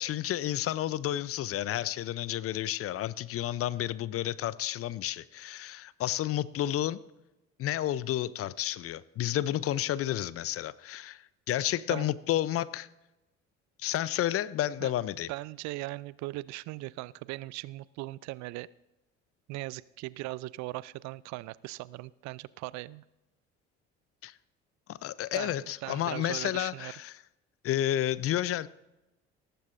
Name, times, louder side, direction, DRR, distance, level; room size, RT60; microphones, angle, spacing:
voice 1, 0.0-7.0 7.6-12.9 13.8-15.3 24.2-24.3 24.9-27.1 27.6-28.7, left 12 dB, 40° left, 19 dB, 0.5 m, -31 dB
voice 2, 15.3-18.7 19.5-23.0 25.3-26.9, right 19 dB, 55° right, 21 dB, 0.4 m, -39 dB
18.0 x 14.5 x 2.6 m, 0.97 s
figure-of-eight pair, 55°, 35 cm